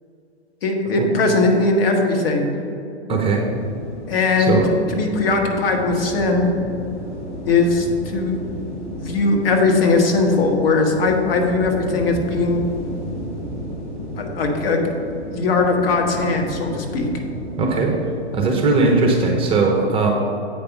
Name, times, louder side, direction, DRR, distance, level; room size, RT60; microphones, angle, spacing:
voice 1, 0.6-2.5 4.1-4.6 4.9-6.5 7.5-8.4 9.0-12.6 14.2-15.0 15.3-17.1, left 3 dB, 55° left, 2 dB, 1.5 m, -19 dB
voice 2, 3.1-3.4 4.4-4.6 17.6-18.0 18.3-20.1, right 3 dB, 15° right, 1 dB, 0.9 m, -18 dB
sound 1, 3.5-19.6, equal, 25° left, 1.6 m, -33 dB
8.2 x 5.1 x 5.9 m, 2.7 s
hypercardioid pair, 130°, 34 cm